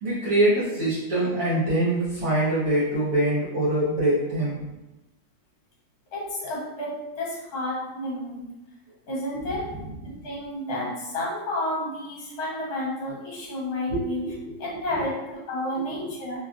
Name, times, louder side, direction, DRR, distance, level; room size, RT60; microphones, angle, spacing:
voice 1, 0.0-4.6 13.9-14.5 14.9-15.1 16.0-16.1, right 1 dB, 60° right, -9 dB, 1.1 m, -24 dB
voice 2, 6.1-8.5 9.1-9.7 10.0-14.3 14.6-16.4, left 1 dB, 65° left, -4 dB, 1.3 m, -31 dB
2.9 x 2.3 x 2.4 m, 0.99 s
omnidirectional pair, 1.9 m